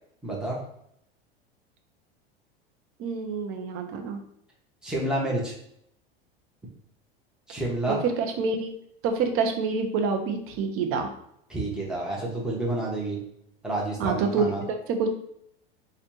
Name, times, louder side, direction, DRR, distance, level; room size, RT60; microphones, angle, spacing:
voice 1, 0.2-0.6 4.8-5.5 7.5-8.0 11.5-13.2 13.6-14.6, right 1 dB, ahead, -4 dB, 1.2 m, -29 dB
voice 2, 3.0-4.2 7.9-8.7 9.0-11.1 14.0-15.1, right 5 dB, 45° right, 5 dB, 0.8 m, -27 dB
4.3 x 2.6 x 2.8 m, 0.73 s
hypercardioid pair, 90°, 31 cm